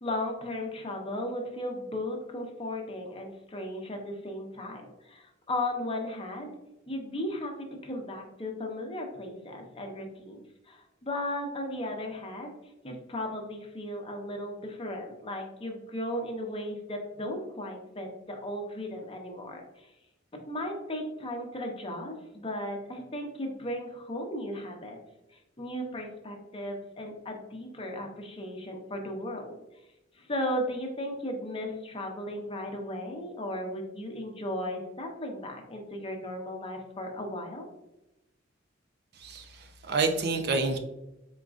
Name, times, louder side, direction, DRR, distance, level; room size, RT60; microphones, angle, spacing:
voice 1, 0.0-6.5 6.9-7.5 7.8-12.5 12.8-19.9 20.5-25.0 25.3-29.6 30.1-37.7, left 1 dB, 30° left, 2 dB, 0.6 m, -36 dB
voice 2, 39.1-40.8, right 3 dB, 55° right, 6 dB, 0.5 m, -28 dB
3.8 x 3.7 x 2.4 m, 0.95 s
head